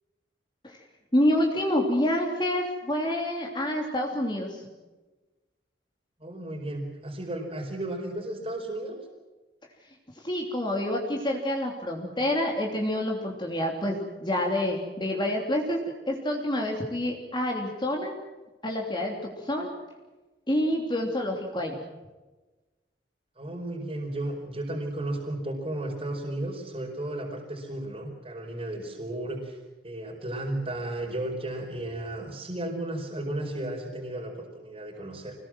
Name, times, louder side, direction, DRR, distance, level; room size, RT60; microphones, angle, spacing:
voice 1, 1.1-4.7 10.2-18.2 18.6-19.7 20.5-21.8, left 1 dB, 25° left, 1 dB, 3.1 m, -28 dB
voice 2, 6.2-9.0 23.4-29.6 29.8-35.3, right 1 dB, 30° right, 0 dB, 4.7 m, -34 dB
26.0 x 20.0 x 7.6 m, 1.2 s
head